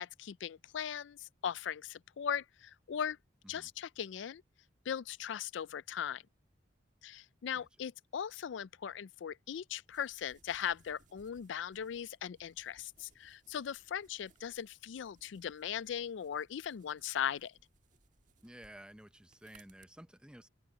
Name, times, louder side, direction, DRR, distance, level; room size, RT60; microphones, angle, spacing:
voice 1, 0.0-3.2 3.5-4.4 4.9-6.2 7.0-17.6, left 8 dB, 65° left, 0.4 m, -39 dB
sound 1, 9.9-19.9, right 4 dB, 40° right, 1.6 m, -68 dB
voice 2, 18.4-20.5, right 1 dB, 5° right, 0.7 m, -53 dB
open air
head